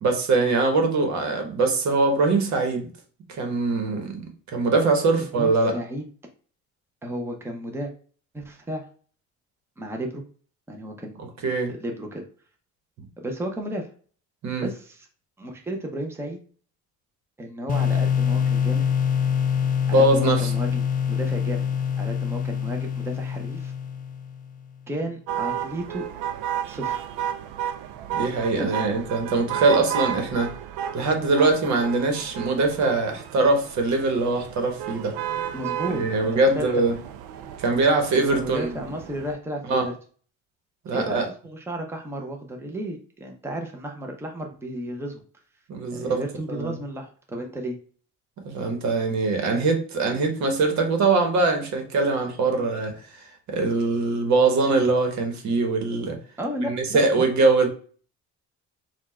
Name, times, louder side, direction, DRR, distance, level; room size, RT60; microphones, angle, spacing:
voice 1, 0.0-2.9 3.4-4.2 4.5-5.7 11.4-11.7 14.4-14.7 19.9-20.5 28.1-30.5 30.9-35.2 35.9-36.9 37.6-38.8 39.7-39.8 40.8-41.3 45.7-46.2 46.5-46.8 48.4-56.2 56.6-57.7, right 3 dB, 65° right, 4 dB, 1.2 m, -22 dB
voice 2, 5.3-6.1 7.0-7.9 8.3-8.8 9.8-10.2 10.7-11.2 11.8-12.2 13.2-13.9 14.6-15.1 15.4-16.4 17.4-18.9 19.9-21.7 22.0-23.7 24.9-26.1 26.7-27.1 28.6-28.8 35.5-36.0 36.3-36.8 38.1-40.0 40.9-45.2 45.9-47.8 56.4-57.3, right 1 dB, 10° right, 2 dB, 0.8 m, -33 dB
sound 1, 17.7-24.5, left 7 dB, 30° left, 0.5 m, -25 dB
sound 2, 25.3-39.3, right 10 dB, 90° right, 0.5 m, -33 dB
4.3 x 2.4 x 4.3 m, 0.42 s
cardioid pair, 105°, 30 cm